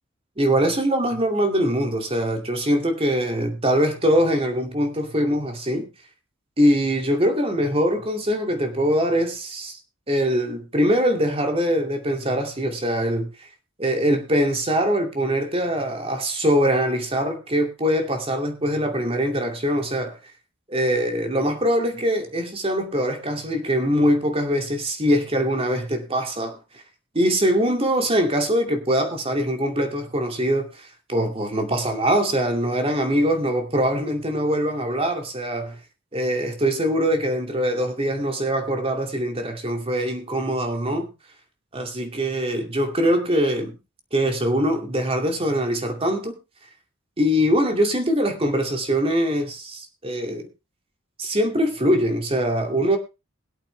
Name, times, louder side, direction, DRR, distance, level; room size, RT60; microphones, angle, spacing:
voice 1, 0.4-5.9 6.6-9.8 10.1-13.5 13.8-20.2 20.7-26.8 27.1-35.8 36.1-41.1 41.7-43.8 44.1-46.4 47.2-50.5 51.2-53.0, equal, 30° right, 2.5 m, -23 dB
22.0 x 8.3 x 3.3 m
head